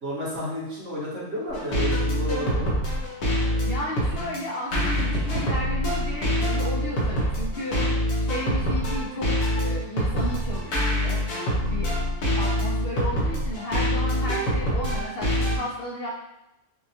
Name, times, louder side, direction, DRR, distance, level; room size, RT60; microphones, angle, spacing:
voice 1, 0.0-2.9, equal, 55° right, -9 dB, 1.8 m, -31 dB
sound 1, 1.5-15.6, equal, 85° left, 1.6 m, -25 dB
voice 2, 3.7-7.8 8.2-9.3 9.6-11.2 11.6-11.9 12.4-16.1, left 1 dB, 65° left, -3 dB, 0.5 m, -33 dB
5.7 x 2.3 x 2.7 m, 0.89 s
omnidirectional pair, 1.6 m